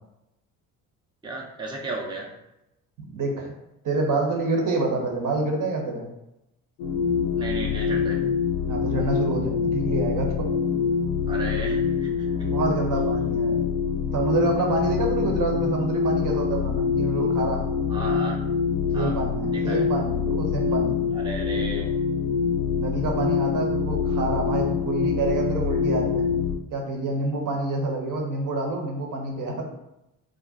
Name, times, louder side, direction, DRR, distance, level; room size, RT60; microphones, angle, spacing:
voice 1, 1.2-2.3 7.4-8.2 11.2-12.5 17.9-18.4 18.9-19.2 19.5-19.8 21.1-21.9, right 2 dB, 10° right, -2 dB, 0.7 m, -34 dB
voice 2, 3.0-3.5 3.8-6.1 8.6-10.5 12.4-13.6 14.1-17.6 18.9-21.0 22.7-26.2 26.7-29.7, right 3 dB, 45° right, 1 dB, 0.9 m, -27 dB
sound 1, 6.8-26.6, left 6 dB, 75° left, 0.6 m, -25 dB
2.4 x 2.2 x 3.9 m, 0.89 s
hypercardioid pair, 55°, 44 cm